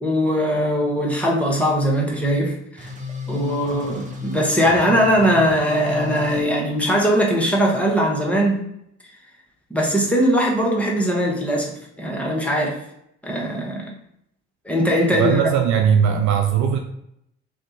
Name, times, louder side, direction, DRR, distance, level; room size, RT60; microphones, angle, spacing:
voice 1, 0.0-2.9 3.3-8.6 9.7-12.8 13.2-13.9 14.6-15.5, equal, 5° left, -3 dB, 1.1 m, -20 dB
sound 1, 2.8-6.4, left 4 dB, 20° right, 0.8 m, -33 dB
voice 2, 15.1-16.8, right 8 dB, 55° right, 3 dB, 0.5 m, -19 dB
2.6 x 2.4 x 3.8 m, 0.76 s
figure-of-eight pair, 45°, 35 cm